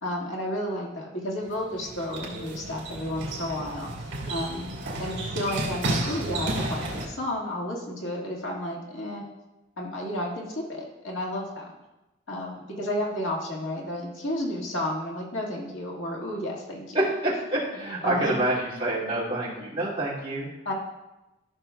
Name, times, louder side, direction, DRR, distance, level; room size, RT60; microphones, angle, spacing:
voice 1, 0.0-3.9 4.2-9.2 9.8-11.7 12.3-17.0 18.0-18.4 20.7-20.8, left 1 dB, 85° left, -3 dB, 1.8 m, -32 dB
sound 1, 1.4-7.0, right 1 dB, 60° right, 2.3 m, -32 dB
voice 2, 16.9-20.5, right 1 dB, 25° right, -8 dB, 2.5 m, -27 dB
14.0 x 6.4 x 2.3 m, 1.0 s
head